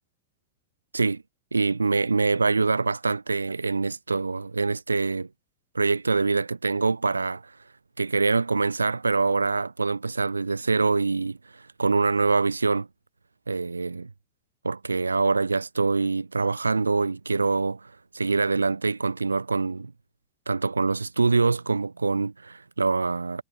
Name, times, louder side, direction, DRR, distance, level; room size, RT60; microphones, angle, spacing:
voice 1, 1.5-5.3 5.7-7.5 8.0-12.9 13.5-14.1 14.6-19.9 20.5-23.4, right 4 dB, 80° right, 1.7 m, -25 dB
figure-of-eight pair, 90°, 0 cm